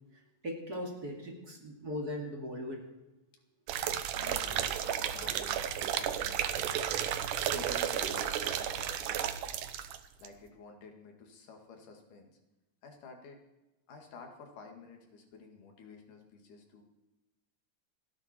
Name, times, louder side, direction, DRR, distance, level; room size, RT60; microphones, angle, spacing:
voice 1, 0.4-2.8, left 1 dB, 30° right, 0 dB, 2.7 m, -39 dB
sound 1, 3.7-10.0 10.2-10.3, right 10 dB, 85° right, 2.5 m, -33 dB
voice 2, 4.1-6.9 7.5-9.6 10.2-12.3 12.8-13.4 13.9-16.8, left 4 dB, 90° left, 3 dB, 3.7 m, -51 dB
29.0 x 9.8 x 4.4 m, 1.0 s
omnidirectional pair, 3.5 m